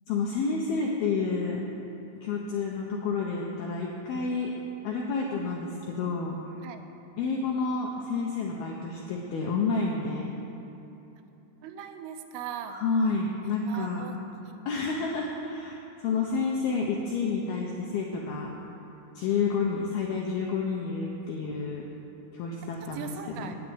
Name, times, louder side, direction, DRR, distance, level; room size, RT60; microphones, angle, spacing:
voice 1, 0.1-1.6 2.2-4.5 4.8-6.4 7.2-10.3 12.7-14.1 14.7-18.5 19.1-21.8 22.3-23.1 23.4-23.5, left 4 dB, 80° left, -1 dB, 2.2 m, -29 dB
voice 2, 11.6-12.8 13.5-14.2 14.5-14.6 22.9-23.6, right 8 dB, 85° right, 7 dB, 3.4 m, -39 dB
9.9 x 9.5 x 9.0 m, 3.0 s
omnidirectional pair, 5.7 m